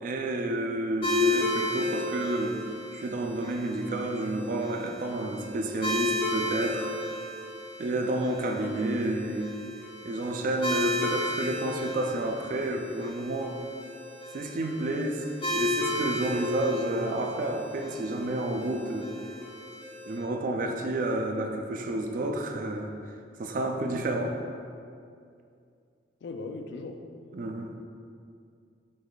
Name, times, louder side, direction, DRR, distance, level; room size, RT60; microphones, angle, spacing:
voice 1, 0.0-2.6 2.9-7.0 7.8-9.5 10.0-13.6 14.3-19.1 20.1-22.9 23.4-24.4 27.3-27.8, right 1 dB, 45° right, 3 dB, 0.3 m, -30 dB
sound 1, 1.0-20.2, left 2 dB, 30° left, 0.6 m, -33 dB
voice 2, 26.2-27.0, left 3 dB, 70° left, 6 dB, 0.3 m, -38 dB
4.9 x 2.3 x 3.9 m, 2.4 s
head